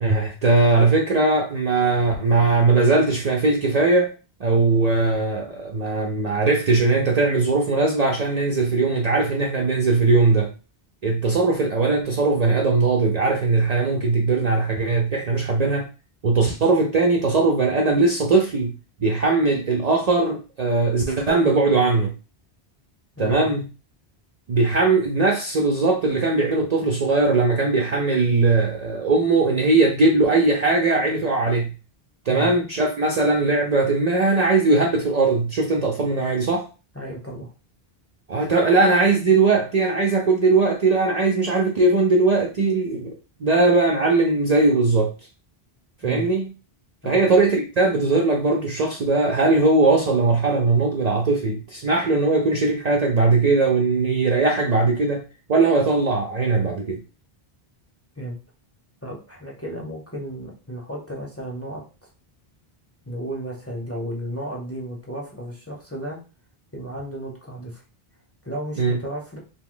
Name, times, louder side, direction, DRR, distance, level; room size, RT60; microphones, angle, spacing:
voice 1, 0.0-4.1 4.4-10.5 11.0-15.9 16.2-18.8 19.0-22.1 23.2-23.7 24.5-31.7 32.3-36.6 38.3-43.1 43.4-45.1 46.0-46.5 47.0-55.2 55.5-57.0 68.8-69.0, right 3 dB, 50° right, 0 dB, 0.5 m, -20 dB
voice 2, 23.2-23.5 32.3-32.6 36.9-37.5 46.0-46.3 47.0-47.3 58.2-58.4 59.0-61.8 63.1-66.2 66.7-67.8 68.4-69.4, right 1 dB, 15° left, -2 dB, 0.7 m, -33 dB
2.8 x 2.2 x 3.7 m, 0.32 s
omnidirectional pair, 1.0 m